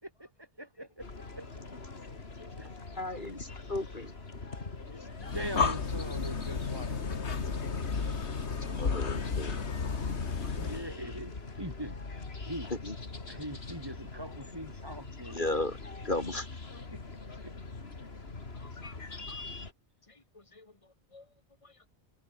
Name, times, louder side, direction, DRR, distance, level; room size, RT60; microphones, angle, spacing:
voice 1, 0.0-1.6 2.6-2.7 5.3-7.2 10.5-11.3 11.6-12.0 12.4-12.7 13.3-15.4 16.9-17.0 17.4-17.5, right 1 dB, 20° right, 6.1 m, -42 dB
sound 1, 1.0-19.7, left 3 dB, 70° left, 2.8 m, -43 dB
voice 2, 2.5-4.1 7.5-7.6 7.9-8.0 8.6-9.6 12.8-12.9 15.3-15.8 16.0-16.5, left 2 dB, 45° left, 3.5 m, -35 dB
voice 3, 4.9-5.3 10.4-10.6 18.5-19.4 20.1-20.7 21.1-21.3 21.6-21.7, left 3 dB, 30° left, 2.6 m, -56 dB
Breathing, 5.2-10.9, left 5 dB, 85° left, 2.0 m, -33 dB
omnidirectional pair, 1.1 m